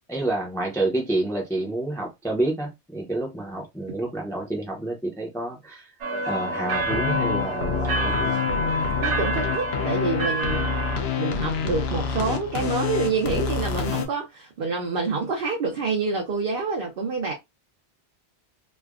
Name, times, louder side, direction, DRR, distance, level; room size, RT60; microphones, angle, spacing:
voice 1, 0.1-6.0 6.3-8.5, right 2 dB, 5° left, 0.6 m, -29 dB
sound 1, 6.0-11.0, right 1 dB, 90° right, 0.9 m, -28 dB
sound 2, 6.7-14.1, left 6 dB, 70° left, 0.8 m, -27 dB
voice 2, 9.0-10.7 11.2-17.3, right 4 dB, 60° right, 0.8 m, -27 dB
3.2 x 2.1 x 2.3 m
omnidirectional pair, 1.2 m